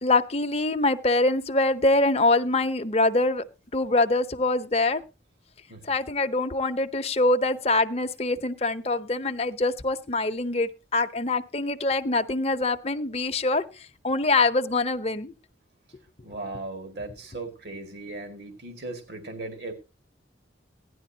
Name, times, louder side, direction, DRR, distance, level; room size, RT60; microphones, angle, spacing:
voice 1, 0.0-3.4 3.7-5.0 5.8-13.6 14.0-15.3, left 2 dB, 35° left, 10 dB, 0.8 m, -24 dB
voice 2, 16.2-19.7, right 2 dB, 65° right, 5 dB, 2.0 m, -37 dB
16.5 x 11.0 x 2.8 m, 0.28 s
head